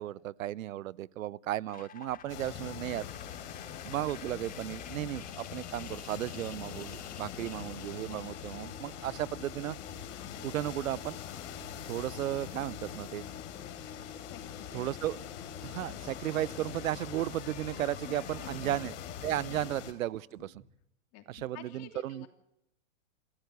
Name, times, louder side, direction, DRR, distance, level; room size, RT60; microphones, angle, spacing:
voice 1, 0.0-3.1 3.8-9.8 10.4-11.2 11.9-13.2 14.7-15.2 15.6-18.9 19.2-20.5 21.3-22.3, right 13 dB, 80° right, 23 dB, 0.7 m, -35 dB
sound 1, 1.7-19.6, left 7 dB, 20° left, 1.6 m, -51 dB
sound 2, 2.1-5.4 6.0-6.5 8.4-13.7 14.2-14.8 15.3-16.6 17.0-20.7, right 3 dB, 5° right, 4.0 m, -60 dB
sound 3, 2.3-19.9, left 9 dB, 65° left, 3.4 m, -43 dB
voice 2, 14.3-14.8 18.0-18.8 19.6-19.7 20.4-20.5 21.1-22.3, left 13 dB, 40° left, 7 dB, 3.1 m, -50 dB
27.5 x 13.0 x 8.1 m, 0.84 s
hypercardioid pair, 130°, 40 cm